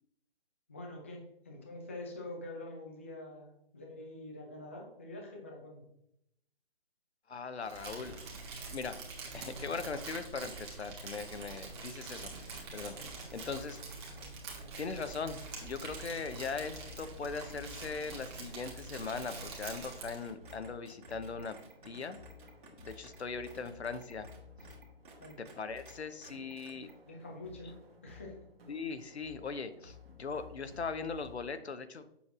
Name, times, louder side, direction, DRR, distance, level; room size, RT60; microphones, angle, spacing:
voice 1, 0.7-5.8 25.2-25.4 27.1-27.8 28.0-28.4, left 2 dB, 15° left, 0 dB, 0.4 m, -46 dB
voice 2, 7.3-8.2 8.7-9.0 9.3-13.8 14.7-21.6 21.8-22.2 22.8-24.3 25.4-26.9 28.7-32.1, left 5 dB, 85° left, 10 dB, 0.8 m, -40 dB
Crumpling crinkling, 7.6-20.2, right 4 dB, 25° right, 1.3 m, -45 dB
sound 1, 11.4-25.9 26.2-26.9, right 4 dB, 50° right, 1.9 m, -56 dB
sound 2, 12.0-31.5, left 4 dB, 65° right, 1.4 m, -56 dB
7.0 x 6.5 x 2.5 m, 0.76 s
figure-of-eight pair, 150°, 32 cm